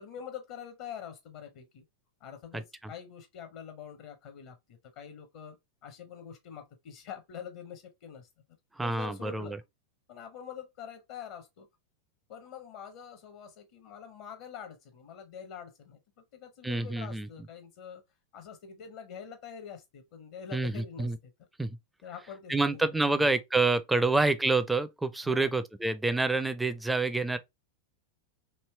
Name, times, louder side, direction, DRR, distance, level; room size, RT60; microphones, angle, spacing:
voice 1, 0.0-1.8 2.2-5.6 5.8-8.3 8.8-9.5 10.1-11.7 12.3-16.0 16.3-18.0 18.3-21.1 22.0-23.3 24.0-24.2 25.2-25.6, left 7 dB, 50° left, 0.6 m, -45 dB
voice 2, 2.5-2.9 8.8-9.6 16.6-17.3 20.5-21.2 21.6-21.8 22.5-27.4, right 3 dB, 5° right, 0.4 m, -28 dB
3.2 x 2.7 x 3.1 m
figure-of-eight pair, 90°, 0 cm